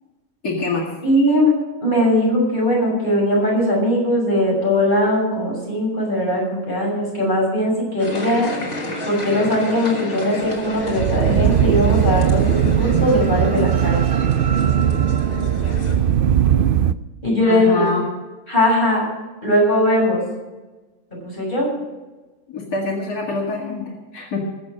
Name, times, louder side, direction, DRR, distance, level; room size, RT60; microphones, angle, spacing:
voice 1, 0.4-0.9 17.4-18.1 22.5-24.5, left 3 dB, 85° left, -2 dB, 2.6 m, -25 dB
voice 2, 1.0-1.5 1.8-8.5 9.1-14.0 17.2-17.9 18.5-19.0 19.4-20.2 21.2-21.7, left 1 dB, 30° left, -3 dB, 6.9 m, -19 dB
sound 1, 8.0-16.0, left 1 dB, 65° left, 3.5 m, -30 dB
Horror sound, 10.5-16.9, right 9 dB, 85° right, 0.4 m, -18 dB
21.5 x 7.3 x 6.4 m, 1.2 s
omnidirectional pair, 1.6 m